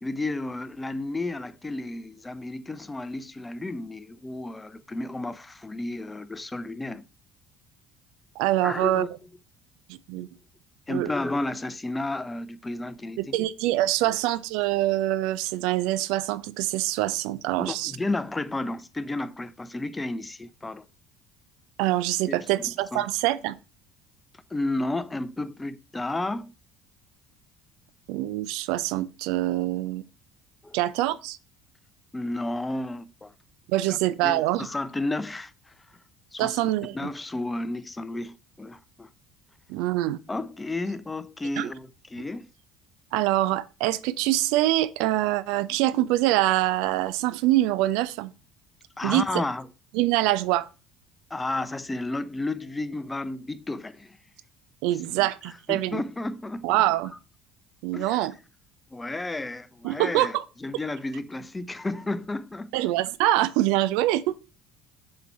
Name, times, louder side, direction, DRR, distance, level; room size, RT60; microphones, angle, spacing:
voice 1, 0.0-7.1 8.6-9.1 10.1-10.3 10.9-13.4 14.0-14.1 17.6-20.9 22.3-22.7 22.9-23.1 24.5-26.5 30.6-30.8 32.1-33.3 33.9-34.0 34.2-35.7 36.3-36.6 36.9-39.1 40.3-42.5 49.0-49.7 51.3-54.2 54.9-56.8 57.9-58.3 58.9-62.8, left 2 dB, 15° left, 0.7 m, -32 dB
voice 2, 8.4-9.1 9.9-10.3 10.9-11.1 13.2-17.9 21.8-23.5 28.1-30.0 30.7-31.4 33.7-34.7 36.4-37.1 39.7-40.2 41.6-41.7 43.1-48.3 49.0-49.2 49.9-50.7 54.8-56.0 56.6-57.1 57.8-58.3 59.8-60.4 62.7-64.4, right 15 dB, 60° right, 0.5 m, -25 dB
6.9 x 4.5 x 5.3 m
figure-of-eight pair, 60°, 0 cm